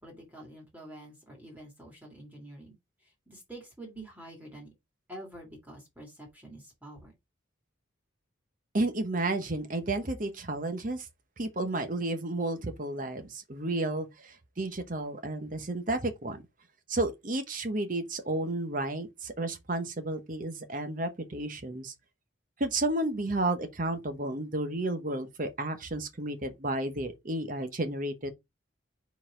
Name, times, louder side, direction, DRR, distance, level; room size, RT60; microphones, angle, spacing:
voice 1, 0.0-2.7 3.0-4.7 5.1-7.1, right 1 dB, 10° right, 2.1 m, -47 dB
voice 2, 8.7-11.1 11.4-16.4 16.9-21.9 22.6-28.3, right 2 dB, 40° right, 1.0 m, -32 dB
4.7 x 4.1 x 5.0 m
head